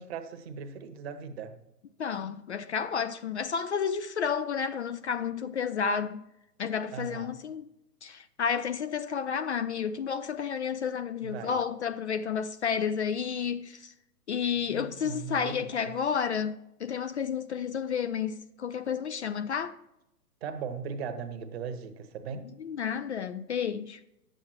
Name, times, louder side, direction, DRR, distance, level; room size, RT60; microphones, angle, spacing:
voice 1, 0.0-1.6 6.9-7.4 11.2-11.6 14.7-16.0 20.4-22.5, right 6 dB, 40° right, 1.1 m, -38 dB
voice 2, 2.0-6.2 6.6-7.7 8.0-13.9 14.3-19.7 22.6-24.0, left 7 dB, 45° left, 0.5 m, -31 dB
10.5 x 7.8 x 4.4 m
figure-of-eight pair, 125°, 48 cm